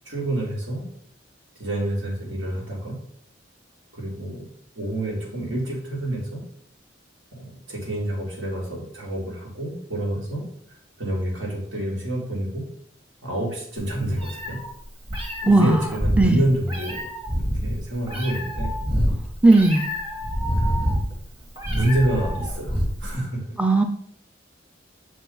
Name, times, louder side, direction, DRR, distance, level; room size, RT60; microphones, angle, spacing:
voice 1, 0.1-0.9 1.6-3.0 3.9-4.5 4.8-6.4 7.3-10.4 11.0-12.6 13.2-14.6 15.4-17.0 17.3-18.7 20.6-20.7 21.7-23.4, right 1 dB, 90° right, -3 dB, 2.5 m, -28 dB
Meow, 13.8-23.2, equal, 30° right, 1.5 m, -27 dB
voice 2, 15.4-15.8 16.2-16.4 19.4-19.8 23.6-23.8, right 2 dB, 5° right, 5 dB, 0.4 m, -16 dB
6.2 x 4.5 x 3.9 m, 0.64 s
head